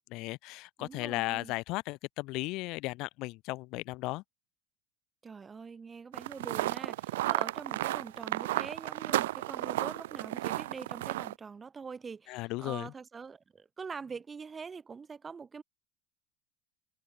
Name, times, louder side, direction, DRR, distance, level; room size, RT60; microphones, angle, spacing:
voice 1, 0.1-4.2 12.3-12.9, left 21 dB, 60° left, 0.5 m, -36 dB
voice 2, 0.8-1.5 5.2-15.6, right 5 dB, 20° right, 5.3 m, -44 dB
sound 1, 6.1-11.3, right 16 dB, 90° right, 0.8 m, -33 dB
open air
supercardioid pair, 120°, 0 cm